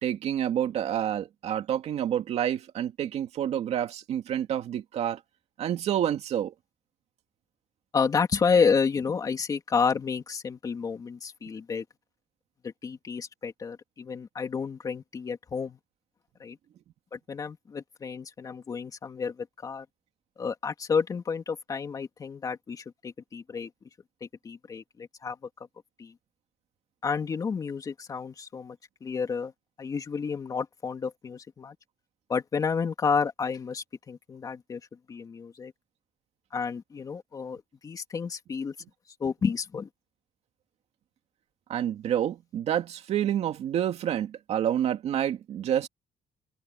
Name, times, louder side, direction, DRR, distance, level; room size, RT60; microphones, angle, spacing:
voice 1, 0.0-5.2 5.6-6.5 41.7-45.9, right 10 dB, 55° right, 2.3 m, -28 dB
voice 2, 7.9-11.8 12.6-15.8 16.4-16.6 17.1-19.8 20.4-23.7 24.4-25.4 26.0-26.1 27.0-29.5 29.8-31.7 32.3-34.8 35.1-35.7 36.5-38.7 39.2-39.9, left 5 dB, 25° left, 3.0 m, -30 dB
cardioid pair, 170°, 13 cm